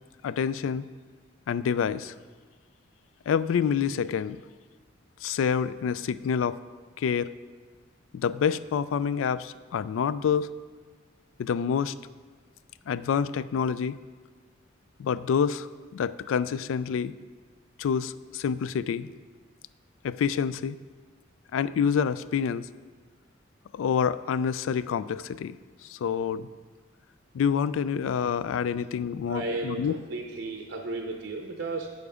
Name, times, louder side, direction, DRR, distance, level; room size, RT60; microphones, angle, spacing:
voice 1, 0.2-0.9 1.5-2.1 3.3-4.4 5.2-6.6 7.0-7.4 8.1-10.5 11.4-11.9 12.9-14.0 15.0-17.1 17.8-19.1 20.0-20.8 21.5-22.7 23.7-25.6 25.8-26.5 27.3-30.0, left 7 dB, 90° left, 16 dB, 0.3 m, -27 dB
voice 2, 29.3-31.9, right 2 dB, 65° right, 3 dB, 0.6 m, -34 dB
8.1 x 6.9 x 4.9 m, 1.5 s
head